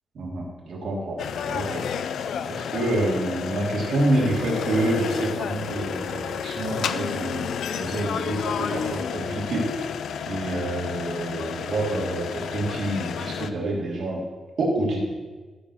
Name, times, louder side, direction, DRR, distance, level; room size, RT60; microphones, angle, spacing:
voice 1, 0.2-1.2 1.5-1.8 2.5-7.5 7.7-9.9 10.3-14.2 14.6-15.0, right 2 dB, 55° right, -4 dB, 3.2 m, -27 dB
sound 1, 1.2-13.5, left 7 dB, 75° left, 0.5 m, -31 dB
14.0 x 5.0 x 6.5 m, 1.3 s
wide cardioid pair, 170°, 0 cm